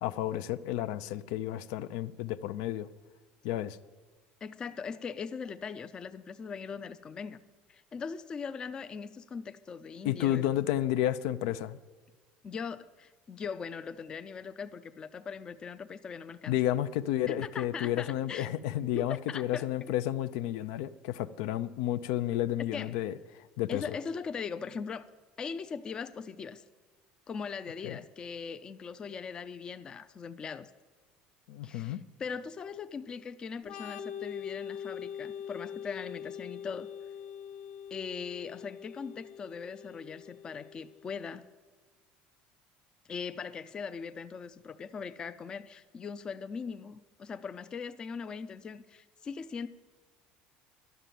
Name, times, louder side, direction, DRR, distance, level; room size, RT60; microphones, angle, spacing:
voice 1, 0.0-2.9 3.4-3.8 10.0-11.8 16.5-24.0 27.8-28.0 31.5-32.0, left 12 dB, 80° left, 12 dB, 0.5 m, -31 dB
voice 2, 4.4-7.4 7.7-10.5 12.4-16.5 17.3-18.5 18.8-19.9 22.7-23.0 23.7-25.1 25.4-26.6 27.3-30.7 31.6-36.9 37.9-41.5 43.1-49.7, left 6 dB, 25° left, 12 dB, 0.4 m, -40 dB
Organ, 33.6-41.1, left 8 dB, 50° left, 0.9 m, -43 dB
11.5 x 6.8 x 9.1 m, 1.4 s
cardioid pair, 150°, 3 cm